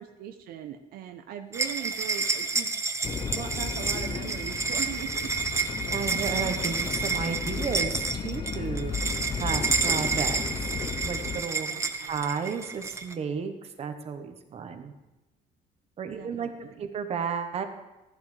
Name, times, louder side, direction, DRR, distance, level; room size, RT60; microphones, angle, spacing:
voice 1, 0.0-2.7 3.0-5.3 11.4-12.2 16.2-16.9, right 9 dB, 75° right, 6 dB, 0.7 m, -40 dB
sound 1, 1.5-13.1, right 4 dB, 15° right, 0.7 m, -30 dB
sound 2, 3.0-11.4, left 6 dB, 30° left, 0.6 m, -34 dB
voice 2, 5.9-9.1 9.4-10.7 11.1-11.7 12.0-14.9 16.0-16.5 16.8-17.6, right 6 dB, 40° right, 7 dB, 1.1 m, -33 dB
14.0 x 10.5 x 3.3 m, 1.0 s
cardioid pair, 130°, 16 cm